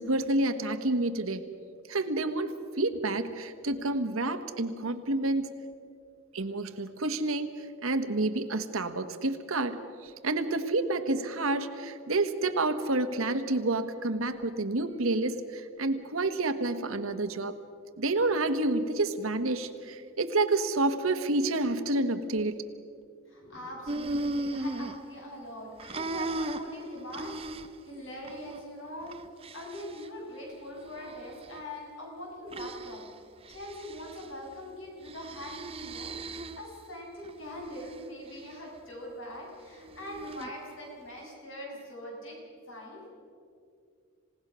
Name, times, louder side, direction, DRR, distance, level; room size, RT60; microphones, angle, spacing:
voice 1, 0.0-1.5 1.9-5.5 6.3-17.5 18.0-22.6, right 2 dB, 85° right, 8 dB, 1.4 m, -29 dB
voice 2, 23.3-33.0 33.5-42.4 42.7-43.1, left 1 dB, 65° left, -1 dB, 7.2 m, -42 dB
sound 1, 23.9-25.5 25.8-27.9 28.2-28.6 29.0-30.1 30.8-31.6 32.5-33.1 33.5-34.2 35.1-36.7 37.2-38.0 39.8-40.5, right 2 dB, 25° right, 0.6 m, -37 dB
27.0 x 17.5 x 6.3 m, 2.3 s
head